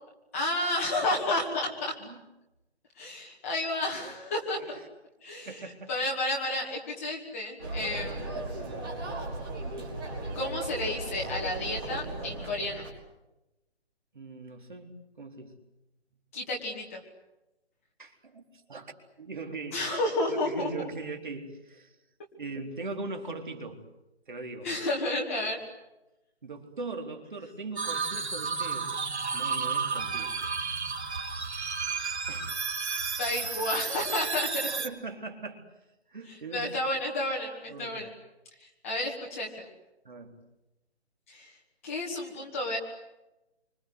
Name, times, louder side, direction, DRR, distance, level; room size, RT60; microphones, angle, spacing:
voice 1, 0.3-2.0 3.0-4.8 5.2-5.6 5.9-8.3 10.3-12.8 16.3-17.0 19.7-20.7 24.6-25.6 33.2-34.7 36.3-38.1 38.8-39.7 41.3-41.5 41.8-42.8, left 1 dB, 15° left, -3 dB, 2.3 m, -31 dB
voice 2, 5.5-5.9 8.1-8.2 14.1-14.9 15.2-15.6 18.0-18.4 18.7-18.9 19.2-19.8 20.3-22.0 22.4-23.8 24.3-24.7 26.4-28.9 29.3-30.5 32.3-32.6 34.6-35.6 36.1-36.7 37.7-38.0 40.0-40.4, right 3 dB, 45° right, 4 dB, 4.0 m, -40 dB
sound 1, 7.6-12.9, right 2 dB, 20° right, 5.6 m, -36 dB
sound 2, 27.8-34.9, right 5 dB, 75° right, 3.7 m, -32 dB
28.0 x 26.0 x 8.2 m, 0.97 s
hypercardioid pair, 180°, 33 cm